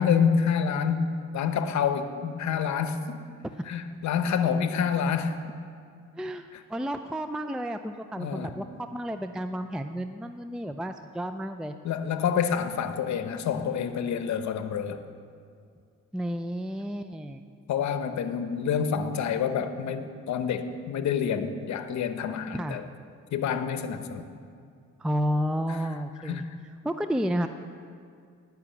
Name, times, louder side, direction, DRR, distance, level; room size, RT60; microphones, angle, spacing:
voice 1, 0.0-3.2 3.7-5.4 8.2-8.5 11.8-15.0 17.7-22.9 23.3-24.3 26.2-26.5, left 7 dB, 70° left, 9 dB, 0.9 m, -27 dB
voice 2, 6.1-8.7 8.9-11.7 16.1-17.4 22.5-22.8 25.0-26.5 26.8-27.5, equal, 5° right, 8 dB, 0.4 m, -31 dB
11.0 x 5.9 x 8.6 m, 2.3 s
cardioid pair, 90°, 30 cm